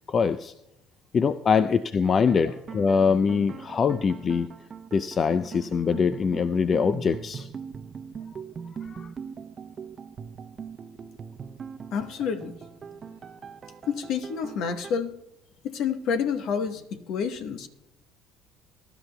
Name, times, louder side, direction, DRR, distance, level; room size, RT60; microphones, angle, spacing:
voice 1, 0.1-0.5 1.1-4.5 4.9-7.5 8.9-9.1, left 6 dB, 40° left, 13 dB, 0.5 m, -23 dB
sound 1, 2.1-14.9, right 6 dB, 40° right, 0.8 m, -41 dB
voice 2, 11.9-12.5 13.9-15.1 15.6-17.7, left 6 dB, 65° left, 8 dB, 1.1 m, -29 dB
22.0 x 12.0 x 2.3 m, 0.85 s
hypercardioid pair, 70°, 0 cm